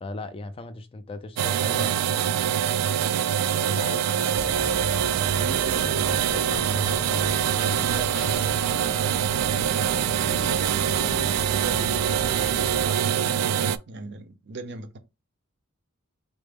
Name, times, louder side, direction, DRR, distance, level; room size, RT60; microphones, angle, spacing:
voice 1, 0.0-2.0 3.7-4.9 5.8-7.3, left 2 dB, 25° left, 0.3 m, -38 dB
sound 1, 1.4-13.8, right 9 dB, 85° right, 0.3 m, -24 dB
voice 2, 3.7-4.2 5.3-6.1 7.8-9.4 10.0-15.0, right 3 dB, 50° right, 0.6 m, -38 dB
sound 2, 4.3-12.9, equal, 5° right, 0.7 m, -40 dB
sound 3, 6.4-13.1, left 4 dB, 90° left, 0.5 m, -41 dB
3.8 x 2.0 x 3.4 m
head